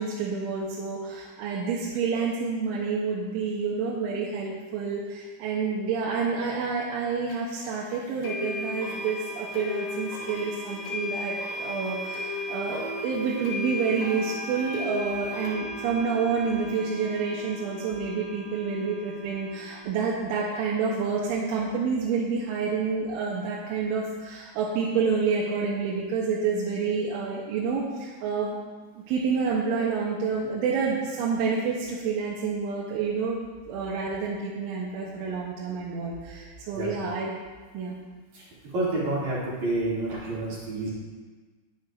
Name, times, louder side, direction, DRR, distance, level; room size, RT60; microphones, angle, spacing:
voice 1, 0.0-28.6 29.0-33.4 33.7-37.3 37.7-38.0, right 5 dB, 90° right, -4 dB, 3.3 m, -28 dB
sound 1, 7.3-7.4 8.2-19.8, left 1 dB, 55° left, 3.0 m, -35 dB
voice 2, 38.7-40.9, right 2 dB, 45° right, -8 dB, 3.3 m, -29 dB
11.5 x 9.1 x 2.5 m, 1.4 s
omnidirectional pair, 5.5 m